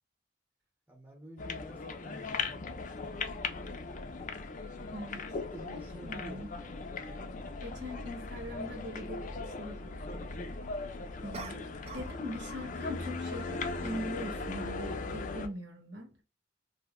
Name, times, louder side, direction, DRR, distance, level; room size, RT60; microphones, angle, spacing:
voice 1, 0.9-2.8 5.5-6.4, right 1 dB, 10° right, 0.9 m, -49 dB
sound 1, 1.4-15.5, left 3 dB, 45° left, 0.5 m, -39 dB
voice 2, 5.7-6.5 7.6-10.2 11.2-11.6 11.9-16.1, equal, 85° right, 1.3 m, -42 dB
sound 2, 7.3-7.4 11.3-12.2 12.5-12.8, right 4 dB, 35° right, 0.4 m, -46 dB
2.7 x 2.1 x 3.5 m
head